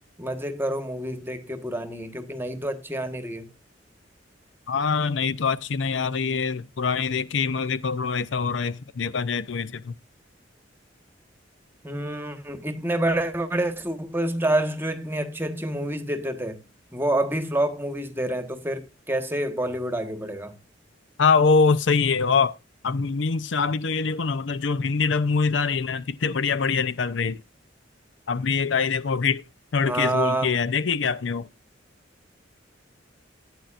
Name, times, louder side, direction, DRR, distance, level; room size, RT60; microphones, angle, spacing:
voice 1, 0.2-3.5 11.8-16.6 16.9-20.5 29.8-30.6, right 1 dB, 10° right, 1.3 m, -28 dB
voice 2, 4.7-9.9 21.2-22.5 22.8-27.4 28.3-29.4 29.7-31.5, left 5 dB, 70° left, 0.6 m, -24 dB
14.5 x 9.4 x 2.5 m
head